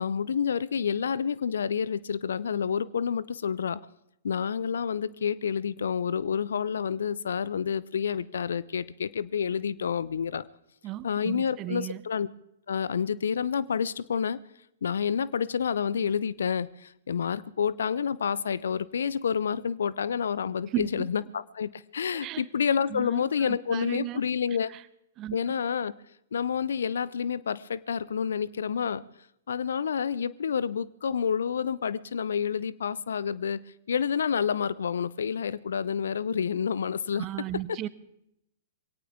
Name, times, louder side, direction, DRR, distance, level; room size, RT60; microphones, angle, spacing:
voice 1, 0.0-3.8 4.2-10.5 11.0-12.3 12.7-14.4 14.8-24.7 25.3-25.9 26.3-29.0 29.5-37.3 37.7-37.8, left 7 dB, 70° left, 20 dB, 0.6 m, -29 dB
voice 2, 10.8-12.0 20.7-21.1 22.1-22.4 22.9-24.2 24.7-24.8 25.2-25.4 37.1-37.9, right 15 dB, 30° right, 16 dB, 0.8 m, -35 dB
22.5 x 18.0 x 3.6 m, 0.80 s
figure-of-eight pair, 105°, 0 cm